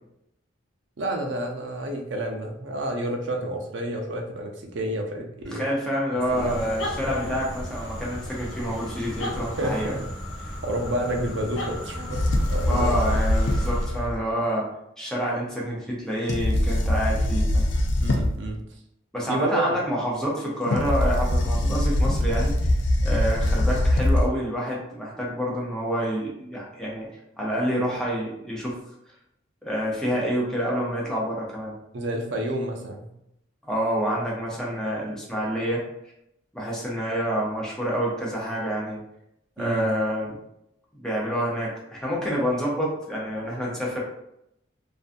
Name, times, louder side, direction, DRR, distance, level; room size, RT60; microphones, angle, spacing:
voice 1, 1.0-5.6 6.1-6.7 7.0-7.4 9.6-10.0 10.6-13.0 18.0-18.6 19.3-19.6 31.9-33.1 39.6-39.9, right 1 dB, 65° right, 2 dB, 0.5 m, -30 dB
voice 2, 5.5-9.9 12.7-14.7 15.0-17.7 19.1-22.6 23.0-27.1 27.4-28.8 29.6-31.7 33.6-35.8 36.5-39.0 39.6-40.4 40.9-44.0, equal, 5° left, -4 dB, 0.6 m, -28 dB
sound 1, 6.2-14.1, left 1 dB, 85° left, 0.9 m, -34 dB
sound 2, 12.1-14.2 16.3-18.5 20.6-24.3, left 1 dB, 60° left, 0.4 m, -23 dB
2.5 x 2.2 x 2.5 m, 0.80 s
head